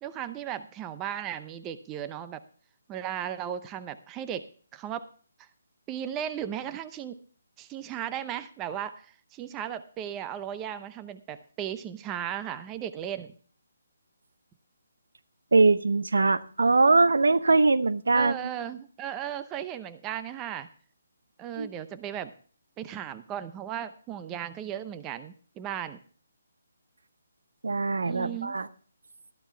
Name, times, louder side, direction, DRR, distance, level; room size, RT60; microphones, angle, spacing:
voice 1, 0.0-2.4 2.9-5.1 5.4-5.5 5.9-7.2 7.6-13.3 18.1-20.7 21.4-22.3 22.8-26.0 28.0-28.6, right 10 dB, 15° right, 12 dB, 0.7 m, -36 dB
voice 2, 15.5-18.5 21.6-21.7 27.6-28.7, right 3 dB, 80° right, 14 dB, 0.8 m, -22 dB
13.0 x 12.0 x 3.3 m, 0.42 s
hypercardioid pair, 155°, 0 cm